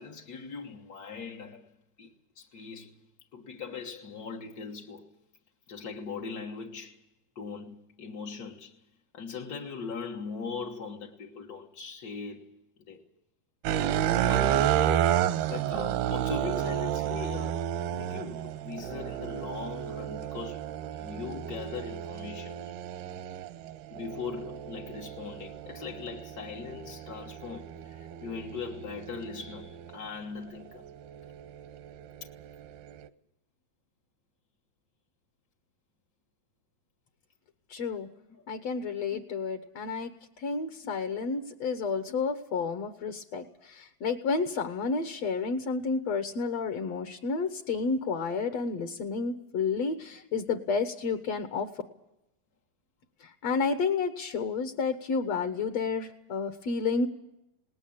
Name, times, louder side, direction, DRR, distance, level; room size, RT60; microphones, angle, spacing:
voice 1, 0.0-1.7 2.0-2.1 2.4-3.0 3.3-5.1 5.7-7.0 7.3-8.8 9.1-12.6 12.9-13.0 14.2-14.9 15.5-17.6 17.9-22.7 23.9-30.8 38.3-38.4 39.1-39.2 40.8-40.9 42.1-42.2 43.0-43.1, left 5 dB, 85° left, 0.8 m, -40 dB
sound 1, 13.6-30.0 30.6-33.1, right 10 dB, 85° right, 2.9 m, -32 dB
voice 2, 37.7-38.1 38.5-40.1 40.4-51.7 53.2-57.1, left 4 dB, 65° left, 1.8 m, -31 dB
20.0 x 19.0 x 8.7 m
omnidirectional pair, 4.4 m